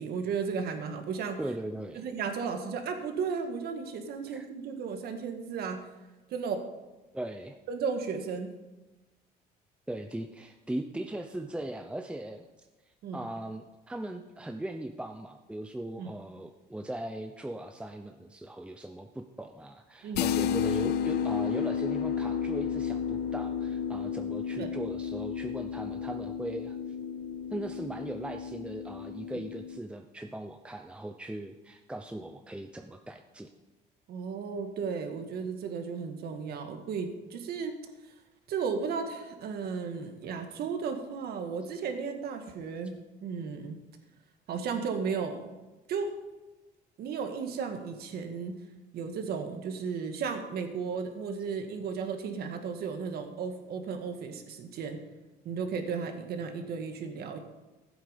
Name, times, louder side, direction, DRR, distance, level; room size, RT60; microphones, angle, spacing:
voice 1, 0.0-1.4 1.9-5.8 6.3-6.6 7.7-8.5 13.0-13.3 16.0-16.1 20.0-20.3 24.6-24.8 34.1-37.8 38.5-43.8 44.5-45.5 45.9-46.1 47.0-48.6 48.9-55.0 55.4-57.4, right 5 dB, 70° right, 6 dB, 1.7 m, -34 dB
voice 2, 1.4-2.0 4.3-4.5 7.1-7.6 9.9-12.5 13.1-26.8 27.5-33.5, right 1 dB, 5° right, 5 dB, 0.7 m, -39 dB
sound 1, 20.2-29.8, left 8 dB, 75° left, 0.7 m, -32 dB
15.0 x 8.0 x 5.2 m, 1.1 s
cardioid pair, 110°, 17 cm